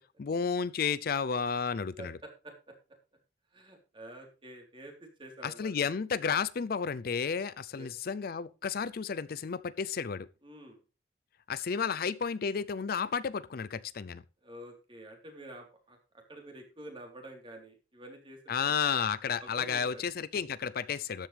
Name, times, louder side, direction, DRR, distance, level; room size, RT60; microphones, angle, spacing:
voice 1, 0.2-2.1 5.4-10.3 11.5-14.2 18.5-21.3, left 6 dB, 55° left, 0.5 m, -32 dB
voice 2, 2.0-2.7 3.5-6.0 7.7-7.9 10.4-10.8 14.4-19.0 19.4-20.0, right 1 dB, 30° right, 3.6 m, -49 dB
13.0 x 10.5 x 3.3 m
head